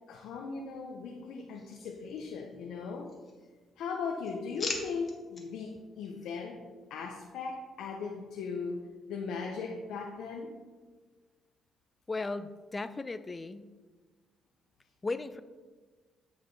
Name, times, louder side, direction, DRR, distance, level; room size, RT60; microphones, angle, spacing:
voice 1, 0.1-3.1 3.8-6.6 6.9-8.8 9.1-10.5, left 5 dB, 85° left, 1 dB, 0.6 m, -38 dB
sound 1, 1.5-2.6 3.0-3.7 4.0-5.5 6.0-6.3, left 4 dB, 45° left, 1.2 m, -42 dB
voice 2, 12.1-13.7 15.0-15.4, left 3 dB, 25° left, 13 dB, 0.4 m, -36 dB
8.7 x 4.8 x 4.0 m, 1.4 s
cardioid pair, 90°, 0 cm